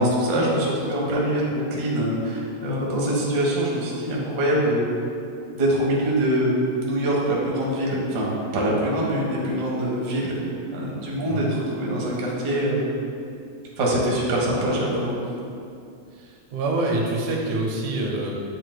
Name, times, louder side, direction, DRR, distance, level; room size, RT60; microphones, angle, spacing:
voice 1, 0.0-4.9 5.5-6.6 6.8-10.4 10.7-12.8 13.8-15.1, right 1 dB, 50° right, -4 dB, 1.3 m, -24 dB
voice 2, 16.1-18.4, right 2 dB, 80° right, -1 dB, 2.2 m, -26 dB
8.0 x 6.3 x 2.2 m, 2.5 s
omnidirectional pair, 3.4 m